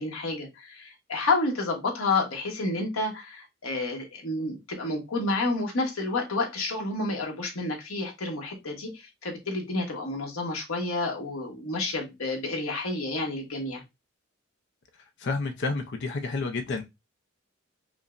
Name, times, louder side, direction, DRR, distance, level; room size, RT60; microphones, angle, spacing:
voice 1, 0.0-13.8, left 2 dB, 85° left, 1.1 m, -30 dB
voice 2, 15.2-16.8, left 3 dB, 55° left, 0.5 m, -30 dB
5.0 x 2.0 x 2.4 m
head